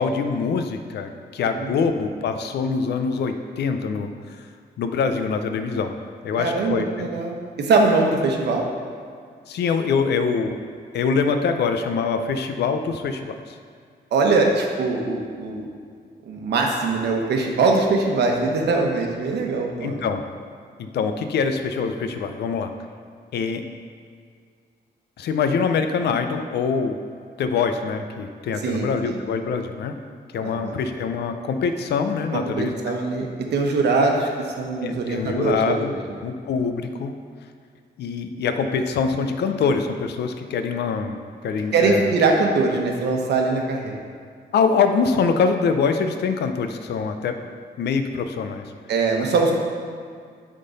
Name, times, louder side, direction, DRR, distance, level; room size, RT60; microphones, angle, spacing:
voice 1, 0.0-4.1 4.8-6.0 6.2-7.1 9.5-10.6 10.9-13.5 19.8-20.2 20.8-22.7 23.3-23.6 25.2-27.0 27.4-29.9 30.3-32.7 34.8-35.9 36.2-37.1 38.0-41.2 41.4-42.1 44.5-47.3 47.8-48.7, left 5 dB, 80° left, 7 dB, 0.5 m, -24 dB
voice 2, 1.5-1.9 6.4-8.7 14.1-15.7 16.3-20.0 28.6-29.2 30.4-30.8 32.3-34.3 34.6-36.0 41.7-43.9 48.9-49.5, right 3 dB, 80° right, 1 dB, 0.9 m, -22 dB
10.0 x 3.8 x 4.0 m, 2.1 s
wide cardioid pair, 150°, 17 cm